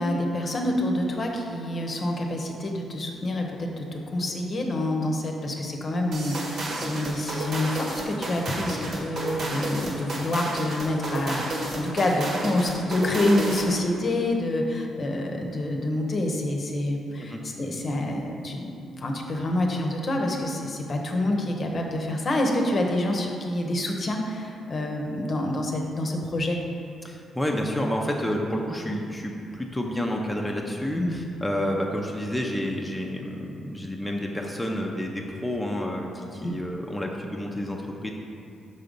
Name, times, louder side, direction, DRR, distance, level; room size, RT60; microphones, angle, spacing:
voice 1, 0.0-18.7 19.0-26.6 30.9-31.2 36.4-36.6, left 1 dB, 45° left, 2 dB, 0.8 m, -27 dB
sound 1, 6.1-13.8, right 1 dB, 60° right, 1.3 m, -32 dB
voice 2, 27.0-38.1, equal, 5° left, -1 dB, 0.6 m, -29 dB
5.6 x 3.8 x 5.2 m, 2.6 s
cardioid pair, 80°, 0 cm